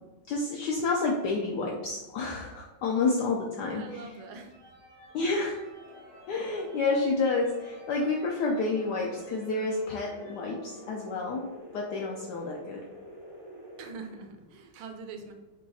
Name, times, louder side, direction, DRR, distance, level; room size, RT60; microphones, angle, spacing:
voice 1, 0.3-4.0 5.1-5.6 6.3-12.8, left 3 dB, 80° left, 0 dB, 0.9 m, -29 dB
voice 2, 3.7-4.7 13.8-15.3, right 4 dB, 85° right, 5 dB, 1.5 m, -43 dB
sound 1, 4.4-11.4, equal, 35° left, 0.3 m, -54 dB
sound 2, 5.8-13.9, left 1 dB, 30° right, 0.4 m, -48 dB
5.1 x 2.3 x 4.0 m, 1.2 s
omnidirectional pair, 2.3 m